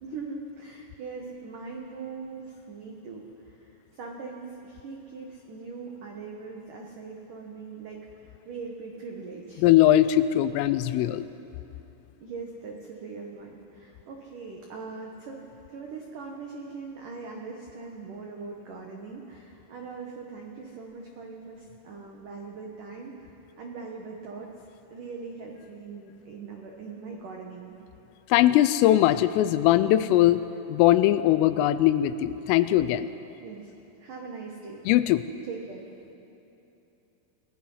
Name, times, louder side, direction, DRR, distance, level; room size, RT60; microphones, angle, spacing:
voice 1, 0.0-9.7 12.2-24.5 24.9-27.8 33.4-33.7 34.0-34.9 35.4-35.9, right 4 dB, 75° right, 0 dB, 1.9 m, -41 dB
voice 2, 9.6-11.3 28.3-30.4 30.7-33.1 34.9-35.2, left 13 dB, 85° left, 13 dB, 3.1 m, -20 dB
29.0 x 18.0 x 5.6 m, 2.9 s
omnidirectional pair, 6.0 m